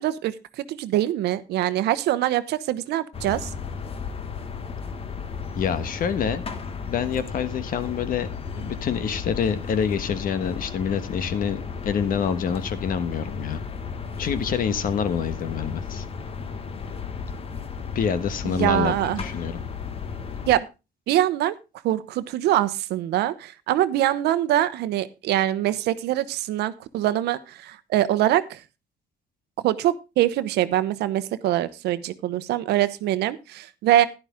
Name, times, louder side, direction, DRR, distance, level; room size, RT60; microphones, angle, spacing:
voice 1, 0.0-3.5 18.4-19.2 20.5-20.7 21.1-21.5 21.8-28.6 29.6-34.1, right 13 dB, 80° right, 14 dB, 1.0 m, -24 dB
sound 1, 3.1-20.6, left 5 dB, 35° left, 1.2 m, -34 dB
voice 2, 5.6-6.4 6.9-8.3 8.5-13.6 14.2-16.0 17.9-19.6, left 7 dB, 55° left, 12 dB, 1.3 m, -26 dB
11.0 x 11.0 x 3.6 m, 0.28 s
cardioid pair, 110°, 17 cm